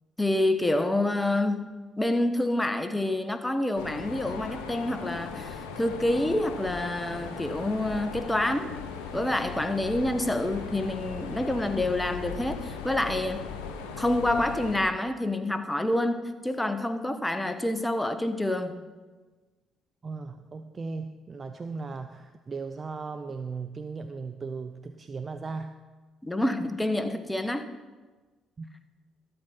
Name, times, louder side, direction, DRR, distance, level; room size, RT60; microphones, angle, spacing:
voice 1, 0.2-8.7 9.1-13.5 14.0-18.8 26.2-27.6, left 1 dB, 10° left, 9 dB, 1.2 m, -27 dB
Mechanisms, 3.8-14.8, left 5 dB, 80° left, 1.1 m, -38 dB
voice 2, 20.0-25.7 28.6-28.7, right 4 dB, 40° right, 9 dB, 0.6 m, -37 dB
13.0 x 8.0 x 5.7 m, 1.3 s
hypercardioid pair, 50°, 0 cm